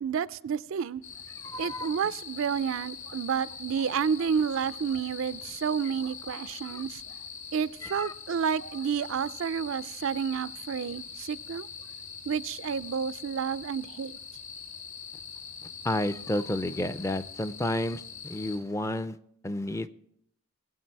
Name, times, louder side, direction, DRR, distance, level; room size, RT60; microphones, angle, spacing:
voice 1, 0.0-1.0 1.6-7.0 7.5-11.7 12.3-14.2, right 7 dB, 70° right, 0.4 m, -30 dB
sound 1, 1.0-18.6, left 6 dB, 80° left, 2.1 m, -43 dB
voice 2, 1.4-1.9 6.7-6.8 7.8-8.1 15.8-19.2 19.4-19.9, left 1 dB, 15° left, 0.4 m, -31 dB
20.0 x 8.0 x 4.6 m
head